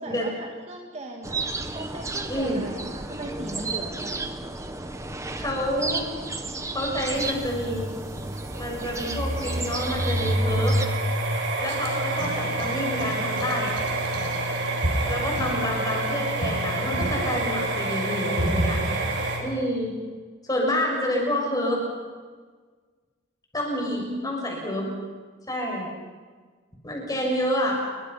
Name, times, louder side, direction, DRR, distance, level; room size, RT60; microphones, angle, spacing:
voice 1, 0.0-1.4 1.7-4.2 15.2-15.5 23.9-24.5, right 1 dB, 30° right, 2 dB, 2.1 m, -37 dB
sound 1, 1.2-10.9, right 3 dB, 15° right, 1.4 m, -33 dB
voice 2, 2.3-2.6 5.4-6.1 6.7-7.9 8.5-10.8 11.6-13.8 15.0-18.8 19.4-19.9 20.4-21.8 23.5-24.8 25.5-25.9 26.8-27.9, left 1 dB, 20° left, -1 dB, 7.2 m, -28 dB
sound 2, 7.2-19.4, right 1 dB, 60° right, 5.0 m, -27 dB
29.5 x 23.5 x 5.9 m, 1.5 s
head